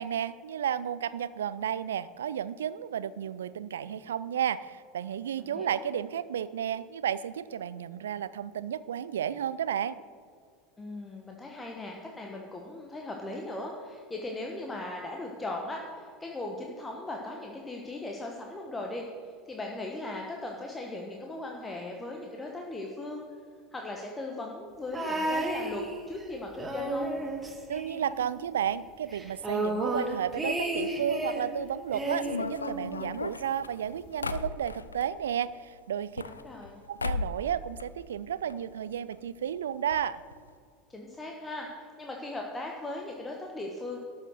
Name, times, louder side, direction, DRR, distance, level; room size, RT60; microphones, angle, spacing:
voice 1, 0.0-10.0 27.7-36.2 36.9-40.2, right 9 dB, 70° right, 17 dB, 0.4 m, -32 dB
voice 2, 5.4-5.8 10.8-23.2 23.7-27.1 36.2-36.8 40.9-44.0, left 2 dB, 15° left, 0 dB, 1.2 m, -38 dB
sound 1, 24.9-26.2 26.5-28.5 28.7-28.8 29.1-31.5 31.9-33.2 34.1-34.2, right 1 dB, 10° right, 1.6 m, -32 dB
sound 2, 32.2-35.1 35.9-36.7 37.0-37.5 37.8-38.6 38.8-38.9 39.1-39.2 39.9-40.0 40.3-40.5, left 4 dB, 80° left, 0.4 m, -36 dB
12.5 x 6.5 x 6.4 m, 2.2 s
figure-of-eight pair, 80°, 0 cm